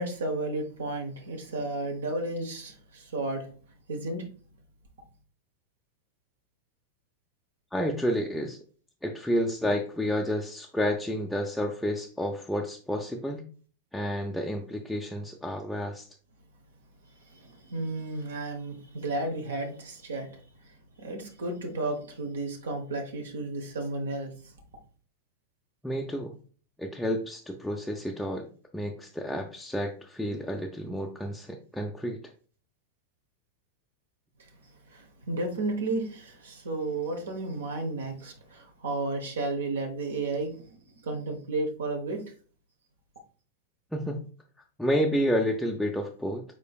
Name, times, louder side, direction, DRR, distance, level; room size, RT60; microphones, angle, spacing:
voice 1, 0.0-3.5 3.9-4.3 17.3-20.3 21.0-24.5 34.9-42.2, right 2 dB, 65° right, 4 dB, 0.9 m, -33 dB
voice 2, 7.7-8.6 9.0-13.4 13.9-16.1 25.8-26.4 26.8-28.5 28.7-32.2 43.9-44.2 44.8-46.4, equal, 5° left, 0 dB, 0.4 m, -30 dB
4.9 x 4.5 x 2.3 m, 0.41 s
figure-of-eight pair, 90°, 0 cm